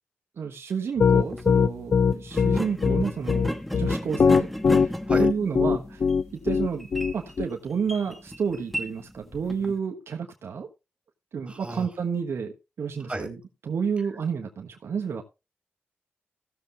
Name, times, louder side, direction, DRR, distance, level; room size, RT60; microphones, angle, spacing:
voice 1, 0.4-4.5 4.7-4.9 5.2-6.0 6.4-6.9 7.1-10.7 11.3-13.4 13.6-15.2, right 6 dB, 80° right, 3 dB, 1.3 m, -30 dB
Piano, 1.0-7.5, left 5 dB, 60° left, 0.5 m, -20 dB
sound 1, 1.2-1.5 2.3-9.8, equal, ahead, 1.3 m, -35 dB
voice 2, 11.5-11.9 13.0-13.3, right 1 dB, 25° right, 5 dB, 4.2 m, -32 dB
16.0 x 7.0 x 3.0 m, 0.27 s
cardioid pair, 55°, 4 cm